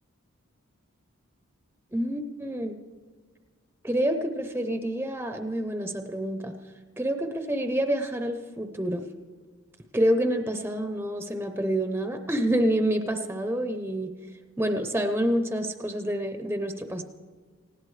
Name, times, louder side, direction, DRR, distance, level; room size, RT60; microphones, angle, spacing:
voice 1, 1.9-2.7 3.8-6.5 7.0-9.0 9.9-14.1 14.6-17.0, right 1 dB, 10° right, 6 dB, 0.7 m, -27 dB
19.0 x 16.5 x 3.3 m, 1.5 s
head